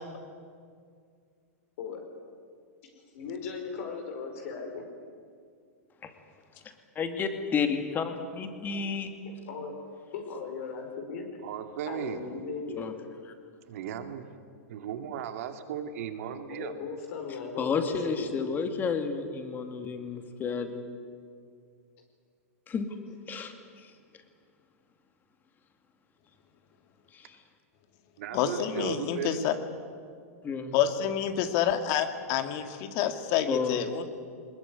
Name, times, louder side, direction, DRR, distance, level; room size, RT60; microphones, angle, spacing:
voice 1, 3.1-4.8 9.5-9.7 10.1-11.3 11.9-12.9 16.5-18.4, left 5 dB, 60° left, 4 dB, 5.0 m, -37 dB
voice 2, 7.0-9.1 12.8-12.9 17.6-20.9 22.7-22.9 23.3-23.9 27.1-27.4 30.4-30.8 33.5-33.9, left 5 dB, 20° left, 7 dB, 2.4 m, -31 dB
voice 3, 11.4-12.2 13.7-14.3 14.7-16.7 28.2-29.7, right 9 dB, 65° right, 7 dB, 2.5 m, -36 dB
voice 4, 28.3-29.5 30.7-34.0, left 9 dB, 45° left, 8 dB, 2.1 m, -28 dB
21.0 x 20.5 x 9.7 m, 2.2 s
hypercardioid pair, 130°, 8 cm